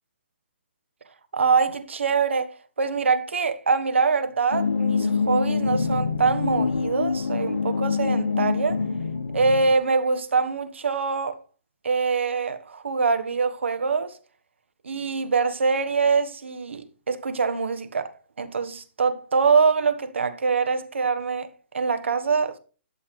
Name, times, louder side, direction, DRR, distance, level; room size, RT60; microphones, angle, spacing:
voice 1, 1.3-8.8 9.3-11.4 11.8-14.2 14.8-18.1 18.4-21.5 21.7-22.6, right 5 dB, 80° right, 1.4 m, -24 dB
sound 1, 4.5-9.7, left 5 dB, 85° left, 0.9 m, -25 dB
11.5 x 7.1 x 3.3 m
hypercardioid pair, 140°, 6 cm